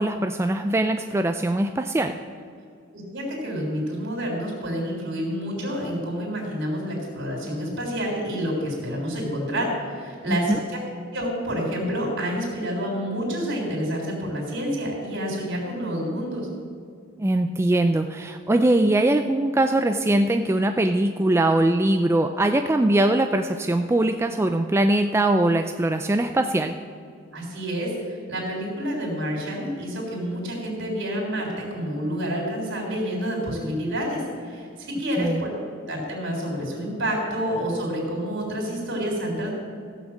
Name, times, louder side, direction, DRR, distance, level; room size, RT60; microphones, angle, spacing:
voice 1, 0.0-2.1 10.3-10.6 17.2-26.8 35.2-35.4, right 1 dB, 15° right, 6 dB, 0.3 m, -21 dB
voice 2, 2.9-10.8 11.1-16.5 27.3-35.5 35.9-39.5, equal, 60° right, -1 dB, 3.7 m, -28 dB
15.5 x 6.3 x 7.3 m, 2.3 s
head